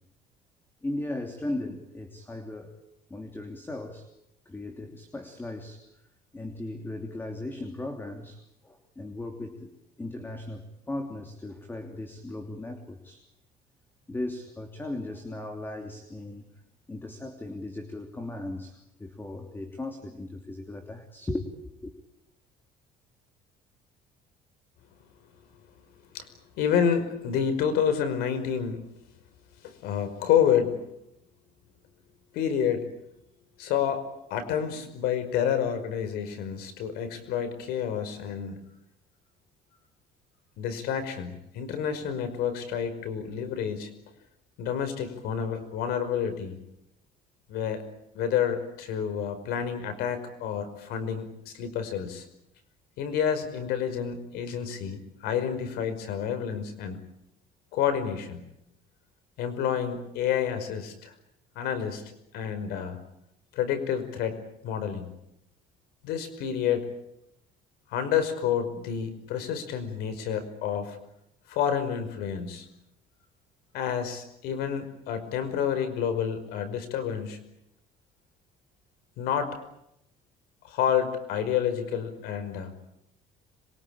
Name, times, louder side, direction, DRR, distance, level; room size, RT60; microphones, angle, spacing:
voice 1, 0.8-2.8 3.1-4.1 4.4-5.9 6.3-9.7 10.0-13.2 14.1-16.5 16.9-21.9, left 2 dB, 15° left, 5 dB, 3.0 m, -37 dB
voice 2, 26.6-28.8 29.6-30.8 32.3-32.9 33.6-34.0 34.3-38.6 40.6-43.9 44.6-46.6 47.5-47.9 48.1-52.3 53.0-57.0 57.7-58.4 59.4-61.1 61.6-62.0 62.3-63.0 63.5-65.1 66.0-66.9 67.9-71.0 71.5-72.7 73.7-77.4 79.2-79.5 80.6-82.7, left 8 dB, 80° left, 10 dB, 5.4 m, -29 dB
26.5 x 23.5 x 8.9 m, 0.83 s
cardioid pair, 130°, 16 cm